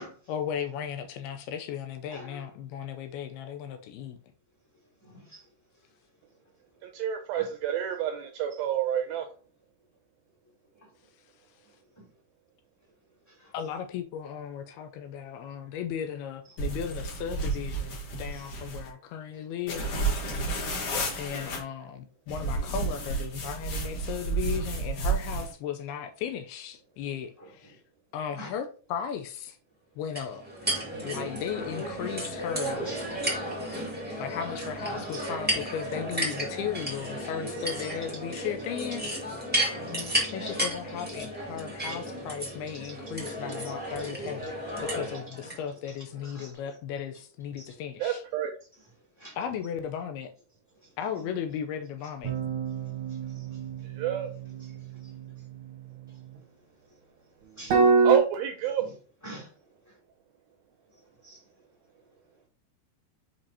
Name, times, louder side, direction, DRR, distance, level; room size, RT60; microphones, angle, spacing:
voice 1, 0.3-4.2 13.5-19.9 21.2-27.8 28.1-29.6 30.0-30.4 31.0-32.9 34.2-39.1 40.3-44.5 44.9-48.2 49.4-50.3 51.0-52.3, left 8 dB, 80° left, 2.4 m, -36 dB
voice 2, 2.1-2.4 5.0-5.4 12.0-12.1 13.4-13.5 28.4-28.5 32.8-33.0 33.3-33.4 34.9-35.3 40.0-40.3 41.9-42.0 42.5-42.6 42.8-42.9 44.0-44.1 46.2-46.5 47.6-47.7 49.2-49.4 53.3-53.4 57.6-57.9 59.2-59.5 61.2-61.4, right 1 dB, 5° left, 1.5 m, -45 dB
voice 3, 6.8-9.3 48.0-48.5 53.8-54.3 58.0-58.8, right 10 dB, 80° right, 2.1 m, -28 dB
sound 1, 16.6-18.9 19.7-21.6 22.3-25.5, right 3 dB, 55° left, 2.7 m, -31 dB
sound 2, 30.1-45.6, right 1 dB, 10° right, 0.5 m, -33 dB
sound 3, 52.2-56.3 57.7-58.2, right 4 dB, 60° right, 1.4 m, -27 dB
7.0 x 5.2 x 2.8 m
omnidirectional pair, 4.8 m